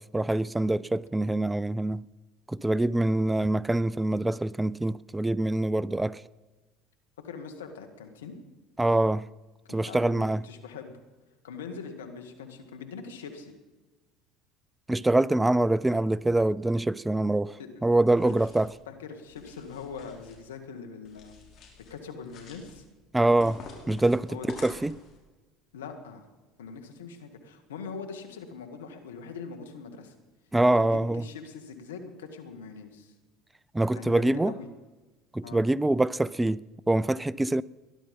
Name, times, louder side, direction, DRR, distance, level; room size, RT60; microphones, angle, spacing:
voice 1, 0.0-2.0 2.5-6.2 8.8-9.2 9.7-10.4 14.9-18.7 23.1-23.6 23.9-25.0 30.5-31.2 33.7-34.5 35.3-37.6, right 2 dB, 10° right, 0.4 m, -25 dB
voice 2, 7.2-8.4 9.7-11.0 11.4-13.5 17.6-17.7 18.2-18.3 18.9-21.4 21.9-22.8 24.3-24.5 25.7-26.3 26.6-30.1 30.7-33.1 33.9-34.7 35.4-35.6, left 5 dB, 90° left, 1.9 m, -42 dB
sound 1, 18.1-18.8 19.3-20.4 21.0-21.9 22.2-22.8 23.4-25.2, left 4 dB, 55° left, 5.1 m, -47 dB
20.0 x 11.5 x 5.4 m
hypercardioid pair, 75°, 0 cm